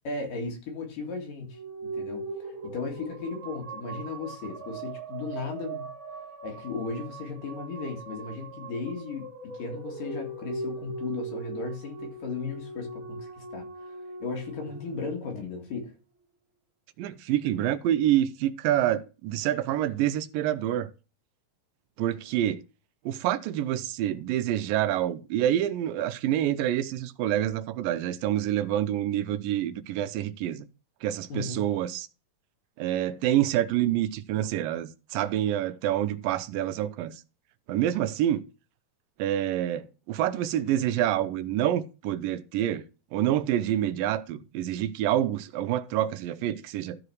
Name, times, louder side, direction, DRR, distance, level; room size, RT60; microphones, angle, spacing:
voice 1, 0.0-1.6 1.9-5.9 6.4-15.9 31.3-31.6, left 4 dB, 70° left, 3.8 m, -36 dB
sound 1, 1.4-15.9, right 3 dB, 40° right, 2.3 m, -40 dB
voice 2, 17.0-20.9 22.0-22.6 23.1-30.7 31.0-32.1 32.8-37.2 37.7-38.4 39.2-42.8 43.1-47.0, right 12 dB, 85° right, 2.4 m, -27 dB
13.5 x 4.9 x 4.7 m
omnidirectional pair, 4.0 m